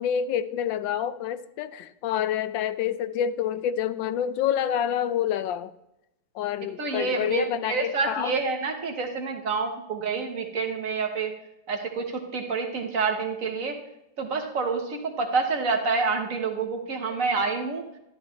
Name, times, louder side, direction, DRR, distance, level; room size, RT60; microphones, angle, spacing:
voice 1, 0.0-5.7 6.3-8.3, left 9 dB, 90° left, 13 dB, 1.3 m, -28 dB
voice 2, 6.8-11.3 11.7-13.8 14.2-17.8, right 4 dB, 50° right, 4 dB, 1.4 m, -28 dB
12.5 x 10.5 x 3.1 m, 0.85 s
omnidirectional pair, 2.0 m